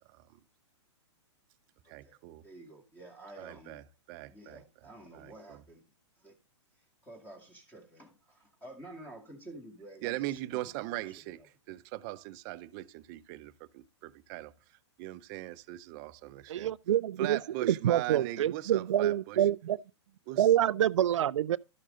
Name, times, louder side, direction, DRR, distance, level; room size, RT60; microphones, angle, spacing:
voice 1, 0.1-0.4 1.9-2.4 3.4-5.6 10.0-16.7 17.2-19.5 20.3-20.5, right 17 dB, 40° right, 0.7 m, -40 dB
voice 2, 1.8-2.2 2.4-3.8 4.3-5.8 6.2-6.3 7.0-11.1 11.7-11.8, right 1 dB, 10° left, 2.1 m, -50 dB
voice 3, 16.5-19.8 20.4-21.6, right 11 dB, 80° right, 0.4 m, -27 dB
12.5 x 6.4 x 3.8 m
hypercardioid pair, 140°, 15 cm